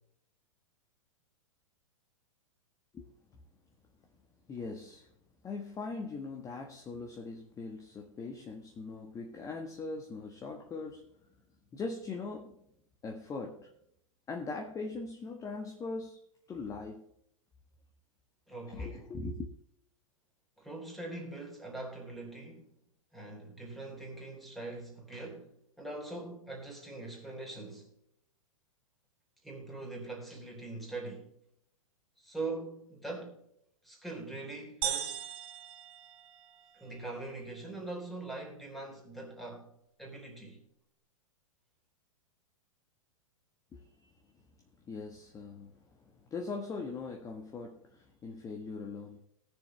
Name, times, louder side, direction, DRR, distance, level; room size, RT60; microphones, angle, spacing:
voice 1, 4.5-5.1 5.4-11.1 11.7-12.6 13.0-13.7 14.3-16.2 16.5-17.0 18.7-19.5 43.7-44.1 44.8-49.2, left 3 dB, 20° left, 1.4 m, -41 dB
voice 2, 18.5-19.0 20.6-22.7 23.1-27.9 29.4-31.3 32.2-33.4 33.8-35.2 36.7-40.6, right 2 dB, ahead, 3.6 m, -42 dB
sound 1, 34.8-36.8, right 10 dB, 35° right, 1.3 m, -38 dB
18.5 x 6.9 x 3.2 m
figure-of-eight pair, 105°, 17 cm